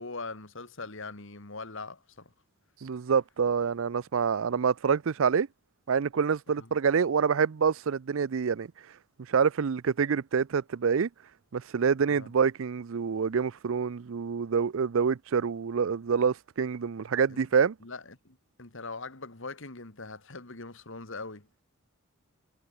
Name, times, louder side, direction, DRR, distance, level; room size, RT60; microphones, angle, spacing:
voice 1, 0.0-2.3 6.6-6.7 12.1-12.3 17.3-17.5 17.8-21.5, left 3 dB, 60° left, 2.4 m, -41 dB
voice 2, 2.8-5.5 5.9-8.7 9.3-11.1 11.5-17.7, right 6 dB, 65° right, 0.5 m, -26 dB
head